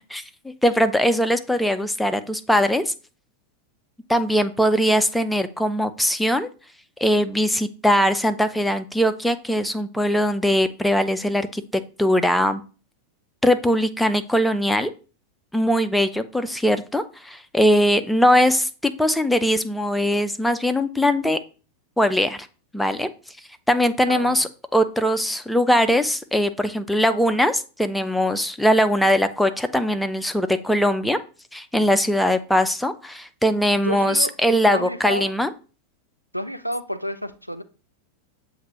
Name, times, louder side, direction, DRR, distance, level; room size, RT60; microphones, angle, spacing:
voice 1, 0.1-2.9 4.1-6.5 7.0-12.6 13.4-14.9 15.5-21.4 22.0-22.5 22.7-23.1 23.7-31.2 31.5-35.5, equal, 5° left, 0.3 m, -21 dB
voice 2, 24.1-24.4 33.7-34.3 34.7-35.3 36.3-37.6, equal, 90° right, 0.4 m, -29 dB
7.2 x 2.5 x 2.8 m
figure-of-eight pair, 90°, 0 cm